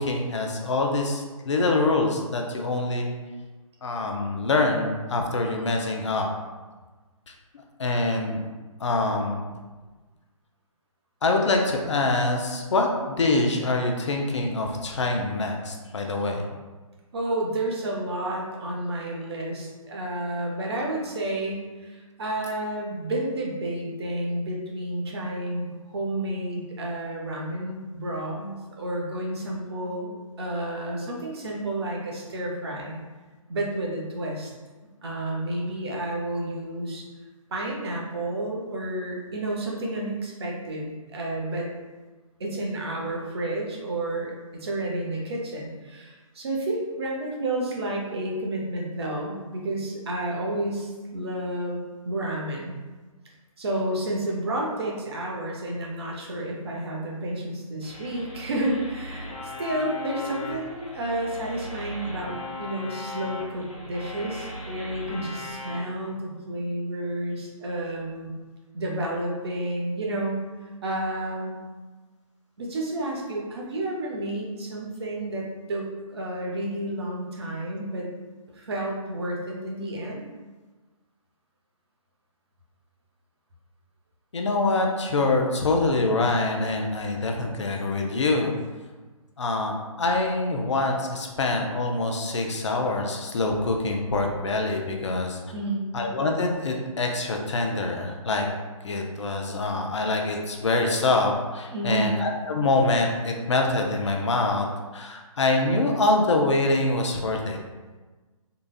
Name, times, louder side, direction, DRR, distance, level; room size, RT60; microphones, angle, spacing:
voice 1, 0.0-3.1 3.8-6.3 7.8-8.4 8.8-9.5 11.2-16.5 84.3-88.5 89.4-95.4 95.9-98.5 98.8-104.7 104.9-107.6, left 2 dB, 55° left, 2 dB, 0.5 m, -25 dB
voice 2, 17.1-33.0 33.5-34.5 35.0-37.0 37.5-41.7 42.4-44.3 44.6-52.8 53.6-68.3 68.7-71.6 72.6-78.1 78.5-80.3 95.5-95.9 101.7-102.2, right 1 dB, 45° right, -2 dB, 0.8 m, -31 dB
sound 1, 57.8-65.8, left 2 dB, 75° left, 1.0 m, -38 dB
3.9 x 2.3 x 2.3 m, 1.3 s
figure-of-eight pair, 140°, 18 cm